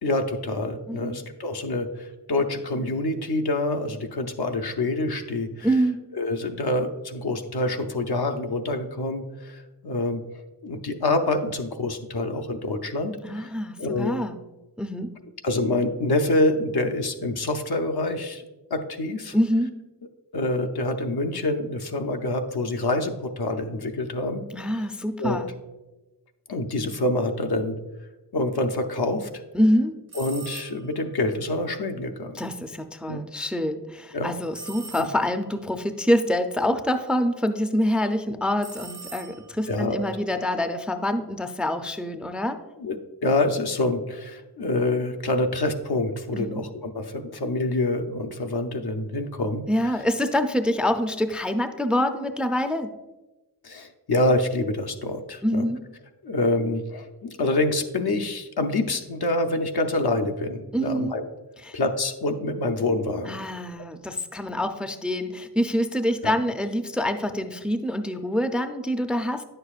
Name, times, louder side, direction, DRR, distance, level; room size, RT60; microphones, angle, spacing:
voice 1, 0.0-5.7 6.2-10.2 10.6-13.5 13.8-14.2 15.4-18.4 18.7-19.3 20.3-24.4 25.2-25.4 26.5-27.8 28.3-29.3 30.1-32.4 33.1-33.2 34.1-34.3 35.0-35.1 39.7-40.1 42.8-49.9 53.6-55.7 56.2-61.2 61.7-63.4 66.2-66.3, left 2 dB, 70° left, 5 dB, 0.7 m, -26 dB
voice 2, 0.9-1.2 5.6-6.0 13.2-14.4 14.8-15.1 19.3-19.7 24.5-25.5 29.5-30.0 32.3-42.6 46.3-46.6 49.7-52.9 55.4-55.8 60.7-61.2 61.6-61.8 63.3-69.4, equal, 5° right, 8 dB, 0.4 m, -26 dB
sound 1, 30.1-31.0 34.5-35.5 38.6-39.7, right 4 dB, 75° right, 0.9 m, -42 dB
9.6 x 6.7 x 2.4 m, 1.1 s
wide cardioid pair, 50°, 40 cm